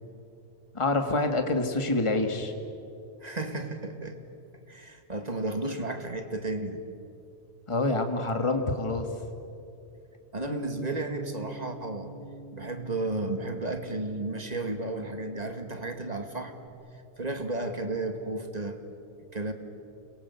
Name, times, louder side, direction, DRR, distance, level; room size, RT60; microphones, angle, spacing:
voice 1, 0.7-2.5 7.7-9.1, left 2 dB, 25° left, 5 dB, 1.8 m, -26 dB
voice 2, 3.2-4.2 4.7-6.8 10.3-12.1 12.5-16.5 17.2-18.8 19.3-19.5, right 2 dB, 35° right, 6 dB, 2.2 m, -33 dB
Bass guitar, 10.4-16.7, right 2 dB, 55° right, 1.5 m, -45 dB
29.5 x 22.0 x 8.3 m, 2.7 s
omnidirectional pair, 1.2 m